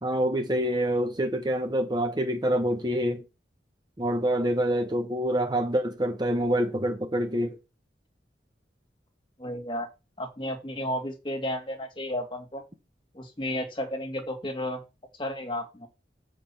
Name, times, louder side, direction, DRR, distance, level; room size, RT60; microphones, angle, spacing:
voice 1, 0.0-3.2 4.0-7.6, equal, 25° right, 1.0 m, -26 dB
voice 2, 9.4-9.9 10.2-12.6 13.1-14.8 15.2-15.9, left 1 dB, 30° left, 2.1 m, -32 dB
7.9 x 5.0 x 5.8 m
head